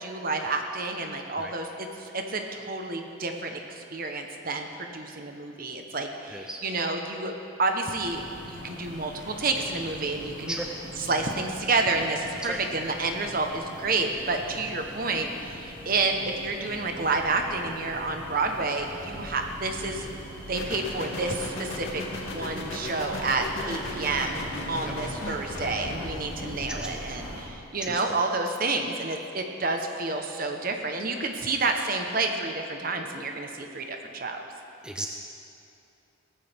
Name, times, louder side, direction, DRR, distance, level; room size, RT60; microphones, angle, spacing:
voice 1, 0.0-7.3 7.6-8.2 8.5-10.6 11.0-20.1 20.4-21.9 22.2-24.4 24.7-34.4, right 3 dB, 45° right, 4 dB, 1.1 m, -29 dB
voice 2, 6.3-6.6 10.5-10.7 11.3-11.4 12.4-12.6 23.6-23.7 24.8-24.9 26.7-27.1 27.8-28.2 34.8-35.1, right 1 dB, 5° right, 1 dB, 0.7 m, -36 dB
sound 1, 8.0-27.4, equal, 15° left, 3.9 m, -42 dB
sound 2, 20.5-26.9, left 1 dB, 80° left, 2.4 m, -36 dB
17.5 x 14.5 x 3.6 m, 2.9 s
head